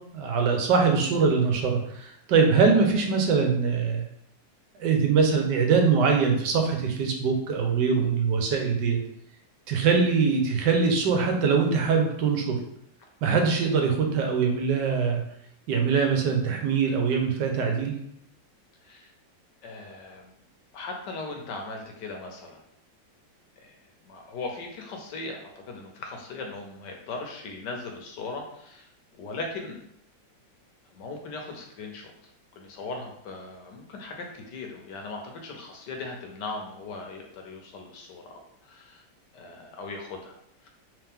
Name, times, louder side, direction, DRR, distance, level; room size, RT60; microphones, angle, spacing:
voice 1, 0.1-4.0 4.8-9.0 9.7-12.6 13.2-15.2 15.7-18.0, right 5 dB, 70° right, 3 dB, 1.2 m, -23 dB
voice 2, 19.6-20.3 20.7-22.6 23.6-23.8 24.0-28.9 29.2-29.8 30.9-32.1 32.5-39.0 39.3-40.7, left 3 dB, 70° left, 2 dB, 1.2 m, -38 dB
3.3 x 3.2 x 3.4 m, 0.73 s
omnidirectional pair, 2.1 m